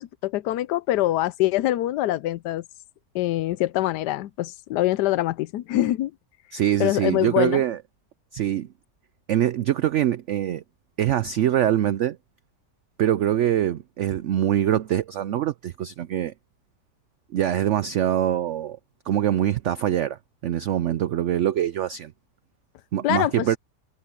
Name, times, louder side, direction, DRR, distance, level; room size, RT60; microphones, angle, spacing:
voice 1, 0.0-2.6 3.1-6.1 6.8-7.6 23.0-23.5, left 15 dB, 80° left, 1.2 m, -24 dB
voice 2, 6.5-7.8 8.3-8.7 9.3-10.6 11.0-12.2 13.0-16.3 17.3-18.8 19.1-22.1 22.9-23.6, right 11 dB, 80° right, 0.6 m, -23 dB
omnidirectional pair, 1.8 m